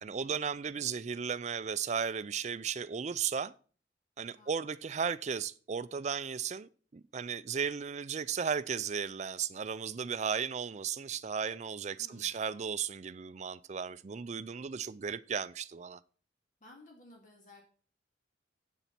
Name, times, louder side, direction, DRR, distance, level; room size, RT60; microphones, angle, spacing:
voice 1, 0.0-3.5 4.2-16.0, right 6 dB, 35° right, 0.4 m, -35 dB
voice 2, 12.0-12.4 16.6-17.6, left 2 dB, 45° left, 2.2 m, -57 dB
8.1 x 7.1 x 5.9 m
head